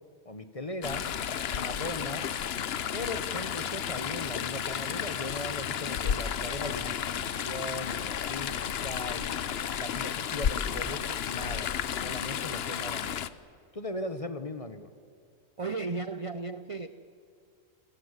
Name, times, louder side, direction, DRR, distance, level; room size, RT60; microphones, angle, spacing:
voice 1, 0.2-1.1 1.5-2.3 2.9-9.4 9.8-11.7 12.0-13.2 13.7-14.9, left 2 dB, 25° left, 1.1 m, -38 dB
Chatter / Stream, 0.8-13.3, left 8 dB, 55° left, 0.9 m, -32 dB
voice 2, 15.6-16.9, right 3 dB, 35° right, 0.6 m, -34 dB
28.5 x 18.5 x 8.3 m
omnidirectional pair, 1.4 m